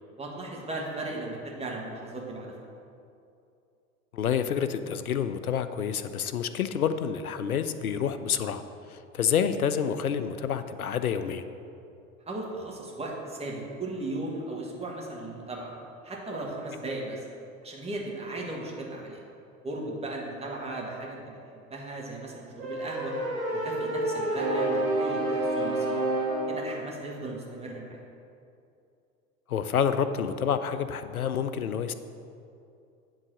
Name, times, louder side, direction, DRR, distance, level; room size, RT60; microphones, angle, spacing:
voice 1, 0.2-2.5 12.3-15.7 16.0-17.2 17.6-19.2 19.6-23.1 23.5-26.0 26.5-28.0, right 2 dB, 15° right, -2 dB, 1.6 m, -37 dB
voice 2, 4.1-8.6 8.9-11.4 29.5-31.9, left 8 dB, 85° left, 11 dB, 0.5 m, -28 dB
sound 1, 22.6-26.6, right 1 dB, 80° right, 2.2 m, -28 dB
9.8 x 4.0 x 6.4 m, 2.6 s
figure-of-eight pair, 80°, 42 cm